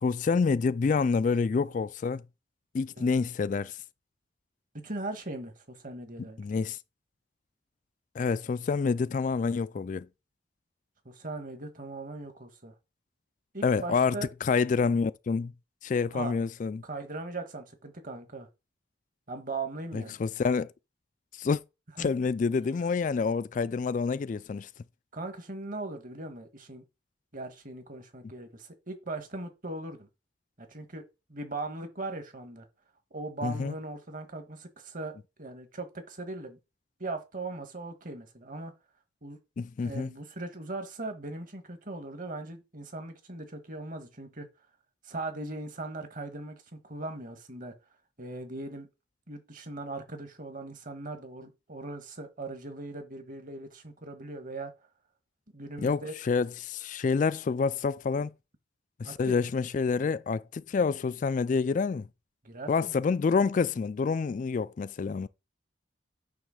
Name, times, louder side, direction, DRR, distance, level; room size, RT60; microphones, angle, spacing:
voice 1, 0.0-2.2 2.7-3.8 6.4-6.8 8.1-10.1 13.6-14.1 14.4-15.5 15.8-16.8 19.9-20.7 21.4-21.6 22.0-24.7 33.4-33.7 39.6-40.1 55.8-58.3 59.0-62.1 62.7-65.3, left 5 dB, 45° left, 0.3 m, -27 dB
voice 2, 4.7-6.4 11.0-12.7 13.5-14.3 16.1-16.4 16.8-18.5 19.3-20.2 22.0-22.1 25.1-26.8 27.3-30.1 30.6-31.0 31.3-32.7 33.1-36.6 37.0-38.7 39.2-39.4 39.8-44.5 45.0-47.7 48.2-48.9 49.3-54.7 55.5-56.1 59.0-59.5 62.4-62.9, right 2 dB, 45° right, 1.4 m, -39 dB
9.1 x 3.2 x 6.4 m
head